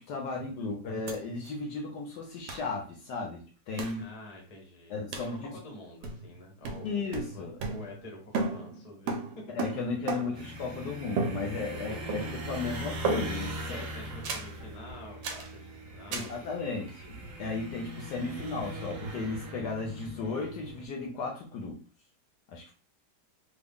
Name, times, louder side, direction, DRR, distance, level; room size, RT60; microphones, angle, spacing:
voice 1, 0.0-4.1 4.9-5.5 6.8-7.5 9.5-13.8 16.1-21.8 22.5-22.7, left 4 dB, 70° left, 1 dB, 1.1 m, -35 dB
sound 1, 1.1-1.2 1.4-1.5 2.5-2.7 3.8-4.0 5.1-5.4 6.0-6.4 6.6-8.1 8.3-10.5 11.2-11.8 12.1-12.5 13.0-13.6 14.2-14.6 15.2-15.5 16.1-16.4, right 4 dB, 75° right, 1.2 m, -34 dB
voice 2, 4.0-5.0 5.4-9.4 9.8-10.6 11.3-12.4 13.7-16.3 16.6-16.9, left 1 dB, 35° left, -1 dB, 0.6 m, -47 dB
sound 2, 10.3-20.9, right 1 dB, 55° right, 1.0 m, -41 dB
3.5 x 2.1 x 3.5 m, 0.36 s
omnidirectional pair, 2.1 m